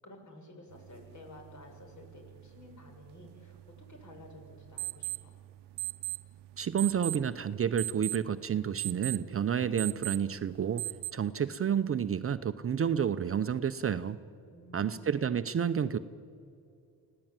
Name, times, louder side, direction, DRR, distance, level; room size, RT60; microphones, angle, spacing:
voice 1, 0.0-5.4 14.5-15.2, left 1 dB, 45° left, 3 dB, 7.0 m, -52 dB
sound 1, 0.7-11.1, right 19 dB, 85° right, 0.8 m, -41 dB
voice 2, 6.6-10.8 11.1-14.2 14.7-16.0, right 8 dB, 35° right, 12 dB, 0.7 m, -30 dB
25.5 x 17.0 x 8.9 m, 2.5 s
cardioid pair, 100°, 40 cm